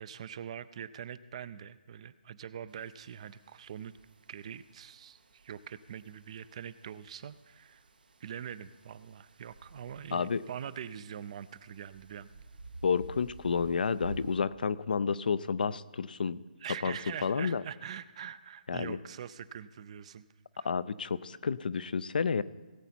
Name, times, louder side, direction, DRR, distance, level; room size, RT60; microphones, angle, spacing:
voice 1, 0.0-3.9 4.3-7.8 8.2-12.3 16.6-20.2 20.6-20.7, right 8 dB, 45° right, 16 dB, 0.4 m, -43 dB
sound 1, 2.7-14.4, right 3 dB, 80° right, 1.0 m, -52 dB
voice 2, 10.1-10.4 12.8-16.4 16.8-16.9 17.2-17.6 18.7-19.0 20.6-22.4, left 5 dB, 70° left, 16 dB, 0.4 m, -30 dB
18.0 x 8.1 x 4.3 m, 1.2 s
hypercardioid pair, 150°, 5 cm